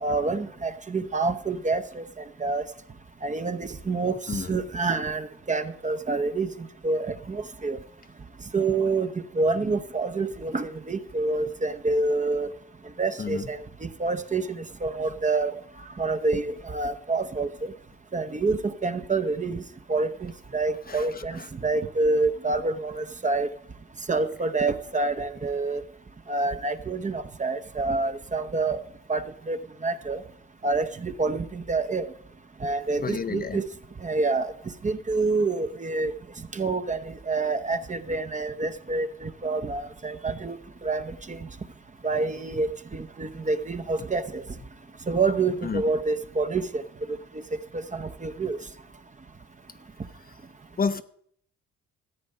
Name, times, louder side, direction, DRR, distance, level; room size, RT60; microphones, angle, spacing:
voice 1, 0.0-2.0 2.4-2.6 3.2-4.1 4.5-6.5 6.8-7.8 8.5-9.1 9.4-12.5 13.0-13.6 14.0-15.5 16.0-17.7 18.1-19.6 19.9-23.5 24.1-25.8 26.3-28.8 29.1-29.6 29.8-30.2 30.6-32.1 32.6-33.7 34.0-34.5 34.8-36.1 36.5-41.4 42.0-44.4 45.1-46.8 47.9-48.6, right 3 dB, 25° right, 0.8 m, -27 dB
voice 2, 20.9-21.5 33.0-33.6 45.6-45.8 50.8-51.0, left 5 dB, 30° left, 0.7 m, -30 dB
14.0 x 8.4 x 5.5 m
cardioid pair, 90°, 30 cm